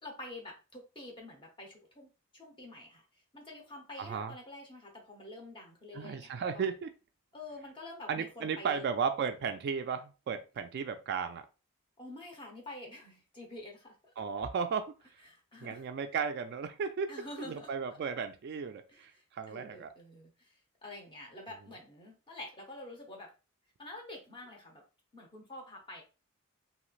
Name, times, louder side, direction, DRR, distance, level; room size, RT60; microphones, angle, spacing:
voice 1, 0.0-3.0 3.3-6.7 7.3-8.9 12.0-14.1 15.2-15.8 17.1-17.7 18.9-23.3 23.8-24.8 25.1-26.0, left 1 dB, 25° left, 1 dB, 0.9 m, -48 dB
voice 2, 4.0-4.3 5.9-6.9 8.1-11.4 14.2-14.9 15.6-19.9, right 6 dB, 50° right, 8 dB, 0.3 m, -35 dB
3.1 x 2.9 x 2.4 m, 0.31 s
head